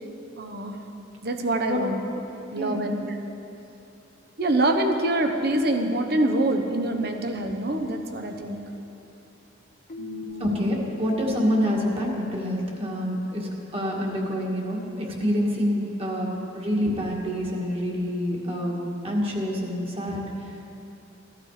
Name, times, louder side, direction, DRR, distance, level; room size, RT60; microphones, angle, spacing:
voice 1, 0.4-0.8 1.2-2.0 2.5-3.0 4.4-8.6 10.0-10.5, right 1 dB, 55° right, 5 dB, 1.1 m, -25 dB
Keyboard (musical), 9.9-12.7, left 7 dB, 40° left, 0.7 m, -43 dB
voice 2, 10.4-18.8 19.0-20.7, equal, 30° right, -2 dB, 2.0 m, -27 dB
15.5 x 11.5 x 5.0 m, 2.9 s
head